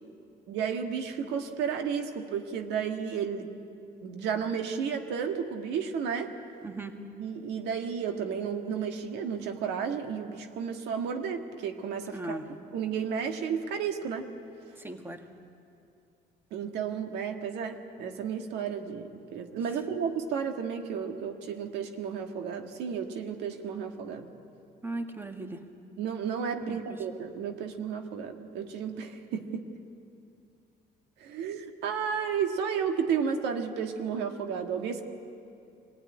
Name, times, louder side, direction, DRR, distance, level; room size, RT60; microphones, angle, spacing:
voice 1, 0.5-3.5 4.0-6.3 7.2-14.3 16.5-24.3 26.0-29.7 31.2-35.0, right 7 dB, 85° right, 5 dB, 1.7 m, -32 dB
voice 2, 6.6-7.0 12.1-12.4 14.8-15.2 24.8-25.6 26.7-26.8, right 2 dB, 15° right, 5 dB, 1.7 m, -37 dB
24.5 x 16.5 x 9.8 m, 2.6 s
cardioid pair, 110°, 17 cm